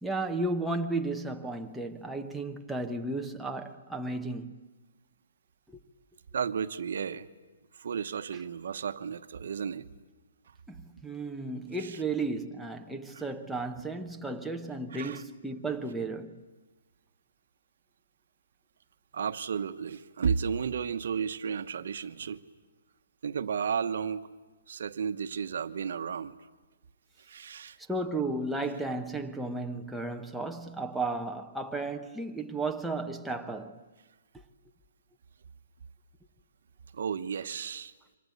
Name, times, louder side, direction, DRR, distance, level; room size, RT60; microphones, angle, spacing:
voice 1, 0.0-4.6 5.7-5.8 10.7-16.4 27.9-33.8, right 2 dB, ahead, 0.9 m, -34 dB
voice 2, 6.3-7.3 7.7-9.9 11.8-12.0 13.1-13.2 14.9-15.2 19.1-22.4 23.2-24.3 24.7-26.4 27.2-27.8 36.9-37.9, right 6 dB, 55° right, 1.2 m, -33 dB
27.5 x 25.5 x 8.4 m
hypercardioid pair, 175°, 0 cm